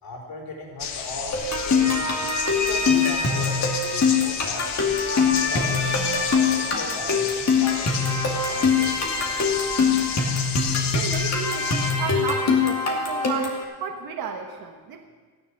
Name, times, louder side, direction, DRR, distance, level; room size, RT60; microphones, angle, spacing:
voice 1, 0.0-2.0 2.5-4.9 5.3-9.7, left 3 dB, 60° left, -2 dB, 4.1 m, -38 dB
sound 1, 0.8-11.9, left 7 dB, 90° left, 1.6 m, -32 dB
sound 2, 1.3-13.6, left 4 dB, 40° left, 2.5 m, -23 dB
voice 2, 10.9-15.1, right 6 dB, 65° right, 3 dB, 1.3 m, -33 dB
15.5 x 10.0 x 6.4 m, 1.5 s
cardioid pair, 155°, 39 cm